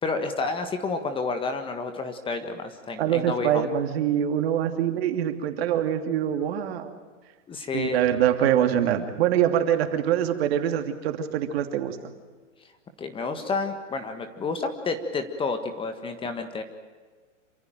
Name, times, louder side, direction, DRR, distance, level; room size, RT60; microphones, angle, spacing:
voice 1, 0.0-3.7 7.5-8.0 13.0-16.6, left 4 dB, 15° left, 8 dB, 1.6 m, -30 dB
voice 2, 3.0-6.9 7.7-12.0, right 10 dB, 55° right, 7 dB, 2.9 m, -24 dB
27.5 x 15.5 x 9.2 m, 1.4 s
hypercardioid pair, 145°, 37 cm